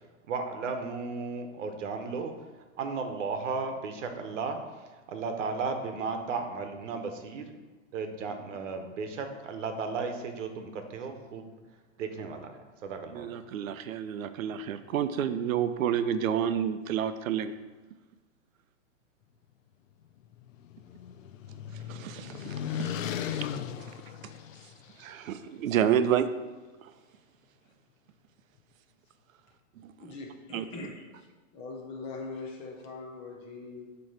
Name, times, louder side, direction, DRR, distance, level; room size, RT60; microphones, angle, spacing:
voice 1, 0.3-2.3 2.8-4.6 5.1-7.5 7.9-11.5 12.0-13.4, right 4 dB, 65° right, 6 dB, 1.1 m, -35 dB
voice 2, 13.1-17.5 21.9-23.0 23.3-23.5 25.0-26.3 29.8-29.9 30.5-30.6, right 9 dB, 85° right, 11 dB, 0.7 m, -29 dB
sound 1, 20.2-25.0, left 9 dB, 75° left, 0.6 m, -37 dB
voice 3, 30.0-31.3 31.5-34.0, left 3 dB, 15° left, 0 dB, 0.6 m, -42 dB
7.7 x 3.1 x 5.6 m, 1.2 s
supercardioid pair, 165°, 39 cm